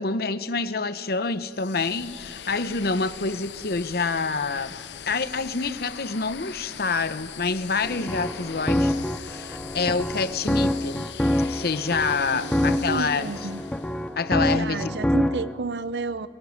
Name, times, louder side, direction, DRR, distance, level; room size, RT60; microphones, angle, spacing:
voice 1, 0.0-4.7 5.1-11.0 11.5-13.3 14.2-14.9, left 4 dB, 60° left, 13 dB, 0.9 m, -27 dB
sound 1, 1.4-14.1, left 8 dB, 80° left, 0.7 m, -41 dB
sound 2, 7.8-15.5, left 1 dB, 5° left, 0.6 m, -26 dB
voice 2, 12.3-13.6 14.4-16.3, right 3 dB, 75° right, 15 dB, 0.7 m, -32 dB
22.0 x 17.5 x 9.6 m, 2.1 s
head